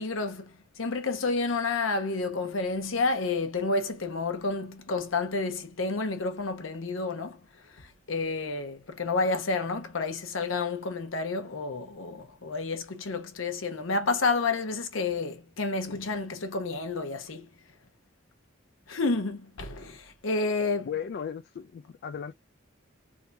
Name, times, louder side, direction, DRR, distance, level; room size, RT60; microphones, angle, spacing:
voice 1, 0.0-7.4 7.7-17.5 18.9-20.9, left 3 dB, 85° left, 0.9 m, -30 dB
voice 2, 20.9-22.3, left 7 dB, 55° left, 0.3 m, -36 dB
3.7 x 2.7 x 2.6 m
head